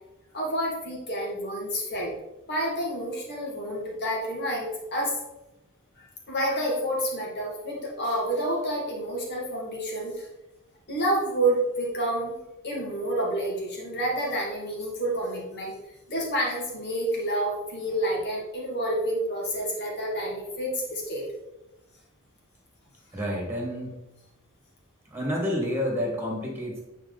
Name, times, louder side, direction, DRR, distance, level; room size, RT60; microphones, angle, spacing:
voice 1, 0.3-2.1 2.5-5.2 6.0-10.3 10.9-12.4 12.6-15.7 16.1-21.2, right 1 dB, 50° left, -3 dB, 2.4 m, -29 dB
voice 2, 23.1-24.0 25.1-26.8, equal, 10° right, -1 dB, 2.2 m, -29 dB
9.0 x 4.7 x 4.1 m, 0.97 s
head